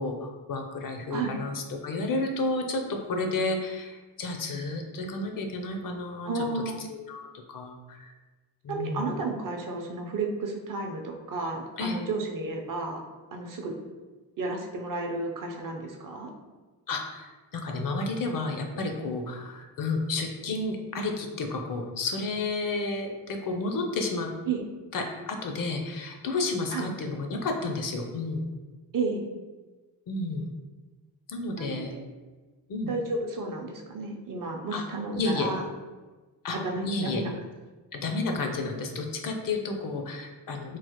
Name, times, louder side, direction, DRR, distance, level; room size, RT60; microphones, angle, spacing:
voice 1, 0.0-6.4 7.0-8.1 8.6-9.0 11.8-12.0 16.9-24.3 24.9-28.5 30.1-30.5 31.3-31.9 32.7-32.9 34.7-34.8 35.2-35.5 36.4-36.6 36.9-37.2 37.9-40.8, left 3 dB, 50° left, 4 dB, 0.5 m, -31 dB
voice 2, 6.2-6.8 8.7-13.0 13.3-13.8 14.4-16.3 24.5-24.7 26.7-26.9 28.9-29.3 31.6-32.0 32.9-35.6 36.6-37.3, right 3 dB, 50° right, 2 dB, 0.6 m, -32 dB
3.1 x 2.0 x 2.9 m, 1.3 s
cardioid pair, 75°, 43 cm